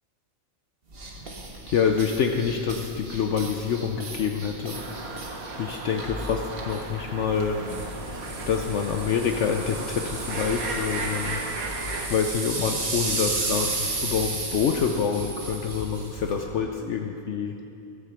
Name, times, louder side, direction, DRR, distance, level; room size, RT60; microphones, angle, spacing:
sound 1, 0.9-16.4, right 2 dB, 45° right, 1.6 m, -34 dB
voice 1, 1.7-4.8 5.6-7.6 8.5-11.7 12.1-17.5, left 6 dB, 65° left, 3 dB, 0.9 m, -27 dB
sound 2, 4.7-12.1, right 3 dB, 85° right, 1.6 m, -36 dB
14.0 x 8.3 x 6.8 m, 2.7 s
omnidirectional pair, 1.5 m